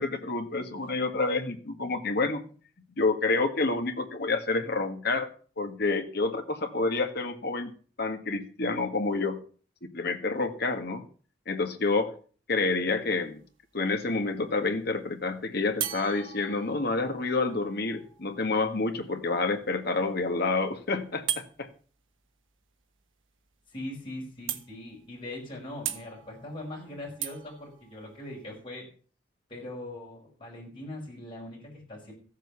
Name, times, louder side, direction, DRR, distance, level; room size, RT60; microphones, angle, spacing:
voice 1, 0.0-2.4 3.0-5.3 5.6-7.7 8.0-9.4 9.8-11.0 11.5-12.1 12.5-13.4 13.7-21.7, left 3 dB, 55° left, 6 dB, 1.7 m, -28 dB
sound 1, 13.0-13.5 15.8-19.5 21.3-21.5 23.5-23.6 23.9-24.0 24.5-25.1 25.9-28.6, right 11 dB, 85° right, 1.3 m, -38 dB
voice 2, 23.7-28.9 29.5-32.1, left 1 dB, 25° left, -4 dB, 5.1 m, -41 dB
14.5 x 7.4 x 7.1 m, 0.42 s
head